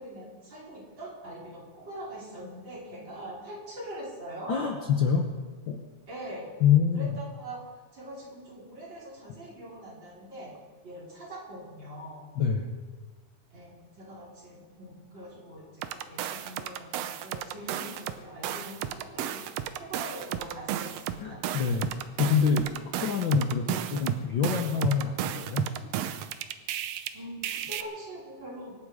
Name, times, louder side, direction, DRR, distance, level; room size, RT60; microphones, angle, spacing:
voice 1, 0.0-4.7 6.1-6.5 6.9-7.6 7.9-10.5 10.8-12.3 13.5-19.4 19.8-21.4 27.1-28.8, right 1 dB, 35° right, -6 dB, 5.1 m, -42 dB
voice 2, 4.5-5.3 5.7-5.8 6.6-7.1 12.4-12.7 21.2-25.7, left 7 dB, 85° left, 3 dB, 1.0 m, -26 dB
sound 1, 15.8-18.2 18.4-27.1 27.4-27.8, right 11 dB, 75° right, 1.5 m, -33 dB
25.0 x 11.0 x 4.9 m, 1.4 s
omnidirectional pair, 3.7 m